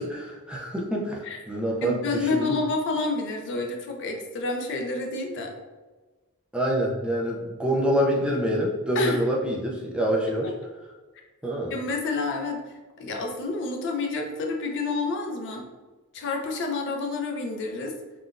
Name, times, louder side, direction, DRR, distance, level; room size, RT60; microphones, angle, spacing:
voice 1, 0.0-1.2 1.5-2.5 6.5-10.5 11.4-11.8, equal, 5° right, -2 dB, 0.3 m, -26 dB
voice 2, 1.8-5.5 8.9-9.2 10.4-10.5 11.7-12.6 13.0-15.7 16.1-18.0, left 3 dB, 55° left, 3 dB, 0.5 m, -29 dB
3.7 x 2.2 x 2.4 m, 1.2 s
head